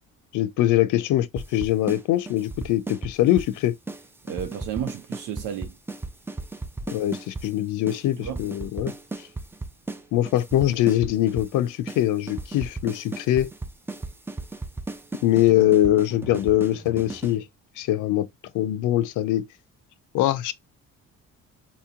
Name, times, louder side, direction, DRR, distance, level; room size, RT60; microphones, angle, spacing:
voice 1, 0.3-3.7 6.9-8.9 9.2-9.3 10.1-13.5 15.2-17.5 17.8-18.3 18.5-19.4 20.1-20.5, left 13 dB, 85° left, 0.5 m, -22 dB
sound 1, 1.4-2.0 2.3-3.5 3.9-4.0 4.3-7.5 7.9-8.0 8.2-10.0 10.3-11.5 11.9-12.0 12.3-17.4, right 3 dB, 10° right, 0.3 m, -35 dB
voice 2, 4.2-5.8 8.1-8.4, right 9 dB, 90° right, 0.5 m, -32 dB
4.2 x 2.8 x 2.3 m
cardioid pair, 90°, 30 cm